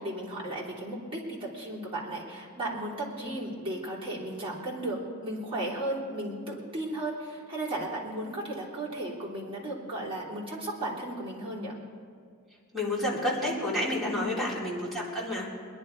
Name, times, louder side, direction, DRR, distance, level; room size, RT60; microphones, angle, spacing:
voice 1, 0.0-11.8 14.0-14.5, right 1 dB, 25° right, -6 dB, 3.3 m, -35 dB
voice 2, 12.7-15.5, left 1 dB, ahead, -8 dB, 3.3 m, -30 dB
21.5 x 11.0 x 4.6 m, 2.2 s
head